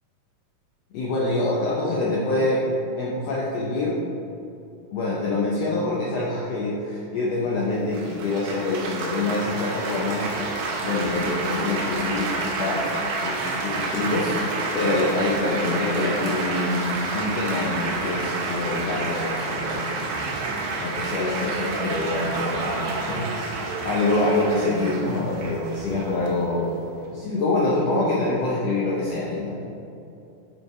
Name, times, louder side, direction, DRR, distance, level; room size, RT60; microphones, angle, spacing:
voice 1, 0.9-2.7 3.0-4.0 4.9-10.3 10.8-12.9 13.2-14.4 14.7-20.2 20.8-26.7 27.1-29.6, left 2 dB, 80° left, -5 dB, 1.4 m, -25 dB
Laughter / Applause / Chatter, 7.9-27.1, right 3 dB, 85° right, 2.6 m, -29 dB
8.3 x 4.1 x 4.6 m, 2.7 s
omnidirectional pair, 3.9 m